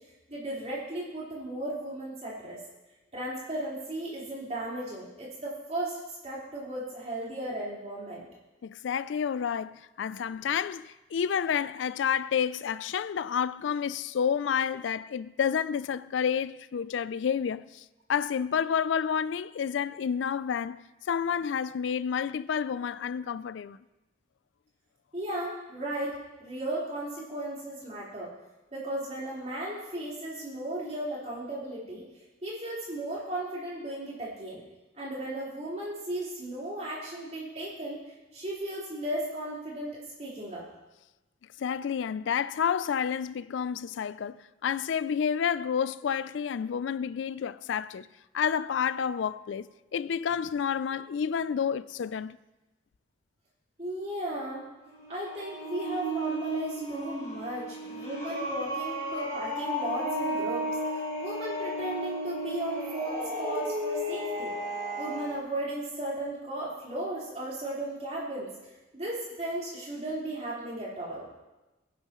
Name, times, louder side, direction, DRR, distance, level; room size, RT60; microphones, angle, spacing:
voice 1, 0.3-2.6 3.1-5.9 6.2-8.2 25.1-28.3 28.7-32.0 32.4-34.6 34.9-38.0 38.3-40.6 53.8-54.6 55.1-60.7 61.2-64.5 65.0-68.5 68.9-71.3, right 1 dB, 35° right, 4.2 m, -35 dB
voice 2, 8.6-17.8 18.1-23.8 41.6-48.1 48.3-52.4, left 7 dB, 80° left, 0.4 m, -30 dB
sound 1, 54.8-65.4, equal, 20° left, 5.1 m, -34 dB
18.5 x 11.0 x 3.1 m
head